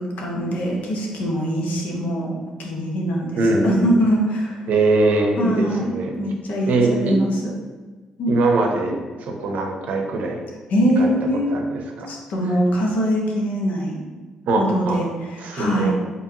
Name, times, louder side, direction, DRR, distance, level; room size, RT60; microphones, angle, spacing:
voice 1, 0.0-2.3 2.6-4.6 5.4-7.4 8.2-8.4 10.7-14.0 14.6-15.9, equal, 65° left, -2 dB, 1.0 m, -23 dB
voice 2, 3.4-3.9 4.7-6.2 6.7-7.2 8.3-10.4 11.0-11.1 11.5-12.1 14.5-15.0 15.4-15.9, right 2 dB, 65° right, 2 dB, 0.7 m, -22 dB
4.6 x 3.2 x 2.8 m, 1.3 s
hypercardioid pair, 45°, 3 cm